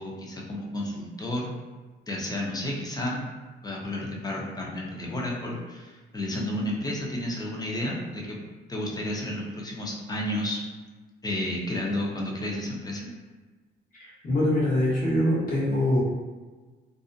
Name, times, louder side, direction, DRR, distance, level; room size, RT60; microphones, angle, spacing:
voice 1, 0.0-1.5 2.1-3.2 3.6-8.4 8.7-10.6 11.2-13.1, left 1 dB, 20° left, -2 dB, 0.6 m, -31 dB
voice 2, 14.0-16.0, left 1 dB, 45° left, -8 dB, 1.0 m, -24 dB
2.6 x 2.1 x 2.5 m, 1.3 s
cardioid pair, 90°, 20 cm